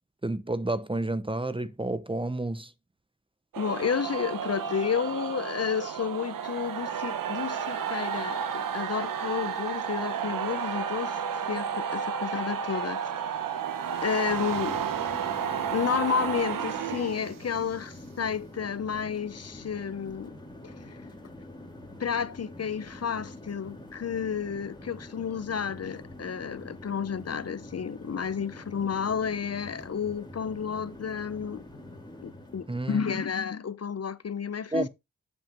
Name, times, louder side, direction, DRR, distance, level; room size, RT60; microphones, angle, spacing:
voice 1, 0.2-2.7 32.7-33.2 34.7-34.9, right 2 dB, 15° right, 0.7 m, -30 dB
sound 1, 3.5-17.7, right 7 dB, 90° right, 0.8 m, -32 dB
voice 2, 3.6-11.2 11.5-13.0 14.0-14.9 15.7-20.3 20.6-21.0 22.0-31.6 32.2-34.9, left 7 dB, 50° left, 0.7 m, -31 dB
sound 2, 14.3-32.8, left 1 dB, 15° left, 2.4 m, -45 dB
7.8 x 6.9 x 3.0 m
cardioid pair, 45°, 32 cm